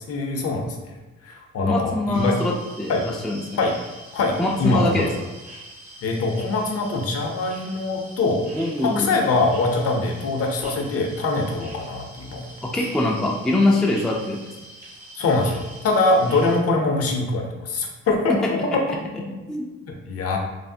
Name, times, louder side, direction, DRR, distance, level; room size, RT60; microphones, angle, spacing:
voice 1, 0.1-0.8 1.2-2.4 2.9-3.0 3.6-3.7 4.1-5.0 6.0-8.4 8.8-12.5 15.2-18.8 20.1-20.4, left 3 dB, 50° left, 2 dB, 0.6 m, -23 dB
voice 2, 1.6-3.6 4.4-5.1 8.5-9.1 12.6-14.5 18.3-18.4 18.9-19.0 19.5-19.7, left 2 dB, ahead, -1 dB, 0.3 m, -23 dB
sound 1, 2.1-16.6, right 1 dB, 60° right, 1.0 m, -44 dB
3.2 x 2.0 x 2.6 m, 1.2 s
cardioid pair, 90°, 30 cm